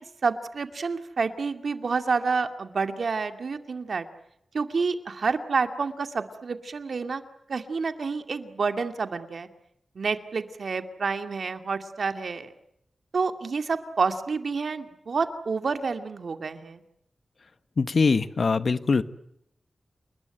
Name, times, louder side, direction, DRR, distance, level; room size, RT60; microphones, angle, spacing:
voice 1, 0.2-4.1 4.5-7.2 7.5-9.5 10.0-12.5 13.1-16.8, right 4 dB, 70° right, 8 dB, 2.3 m, -29 dB
voice 2, 17.8-19.0, left 4 dB, 60° left, 13 dB, 1.2 m, -22 dB
29.0 x 20.5 x 9.0 m, 0.78 s
wide cardioid pair, 90°, 0 cm